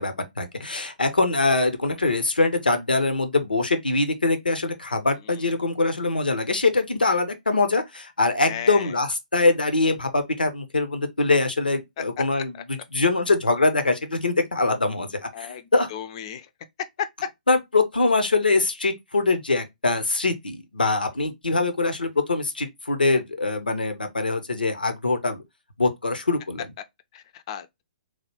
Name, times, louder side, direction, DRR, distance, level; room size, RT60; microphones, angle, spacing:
voice 1, 0.0-15.9 17.5-25.4 25.8-26.7, left 3 dB, 85° left, 0.6 m, -23 dB
voice 2, 8.4-8.9 15.3-16.5 17.0-17.1 27.1-27.8, left 9 dB, 40° left, 0.4 m, -35 dB
3.1 x 2.2 x 2.9 m
figure-of-eight pair, 125°, 5 cm